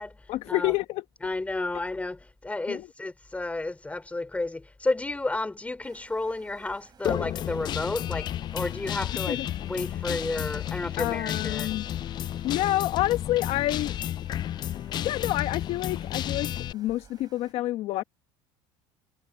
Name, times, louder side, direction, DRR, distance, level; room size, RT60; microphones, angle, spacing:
voice 1, 0.3-1.0 2.7-2.9 9.3-9.5 11.0-11.9 12.4-13.9 15.0-18.0, left 15 dB, 60° left, 1.2 m, -28 dB
voice 2, 1.2-9.4 9.7-11.7, left 2 dB, 10° left, 3.1 m, -32 dB
sound 1, 5.8-17.5, right 7 dB, 35° right, 7.2 m, -57 dB
Guitar, 7.0-16.7, left 11 dB, 40° left, 0.4 m, -32 dB
supercardioid pair, 95°, 12 cm